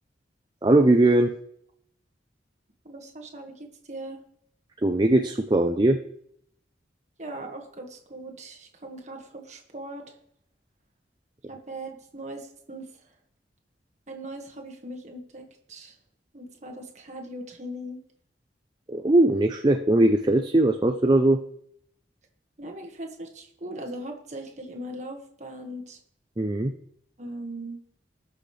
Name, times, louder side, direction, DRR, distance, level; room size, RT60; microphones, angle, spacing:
voice 1, 0.6-1.3 4.8-6.0 18.9-21.4 26.4-26.7, right 1 dB, 25° right, 5 dB, 0.5 m, -20 dB
voice 2, 2.9-4.2 7.2-10.1 11.5-12.9 14.1-16.0 16.3-18.0 22.6-26.0 27.2-27.8, right 1 dB, 40° right, 2 dB, 1.7 m, -39 dB
19.0 x 6.4 x 3.3 m, 0.68 s
head